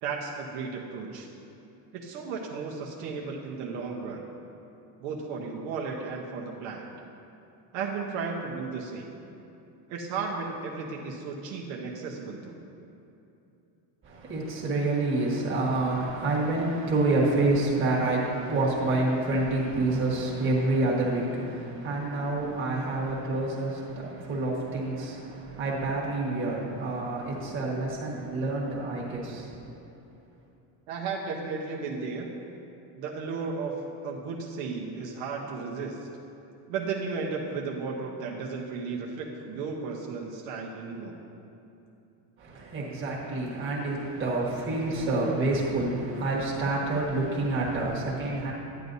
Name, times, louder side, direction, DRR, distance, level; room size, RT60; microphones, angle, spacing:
voice 1, 0.0-1.3 1.9-4.2 5.0-6.9 7.7-9.1 9.9-12.6 30.9-32.3 32.9-33.7 34.0-36.1 36.7-41.2, right 4 dB, 70° right, -1 dB, 1.0 m, -34 dB
voice 2, 14.0-29.6 42.4-48.5, right 2 dB, 25° right, -4 dB, 1.5 m, -28 dB
10.5 x 9.4 x 2.7 m, 2.9 s
cardioid pair, 170°, 49 cm